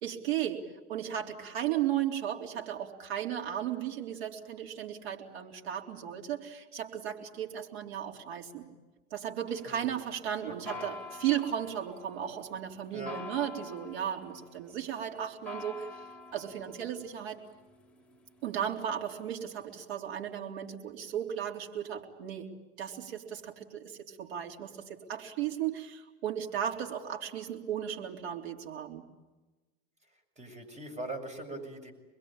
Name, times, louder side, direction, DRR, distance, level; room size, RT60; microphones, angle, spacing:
voice 1, 0.0-8.7 9.1-16.0 16.3-17.4 18.4-22.5 22.8-29.1, right 10 dB, 80° right, 2 dB, 3.8 m, -35 dB
sound 1, 9.5-19.6, left 4 dB, 5° left, 4.9 m, -49 dB
voice 2, 10.4-10.9 12.9-13.2 30.4-31.9, right 2 dB, 20° right, 7 dB, 6.8 m, -41 dB
26.5 x 22.0 x 8.9 m, 1.2 s
hypercardioid pair, 90°, 32 cm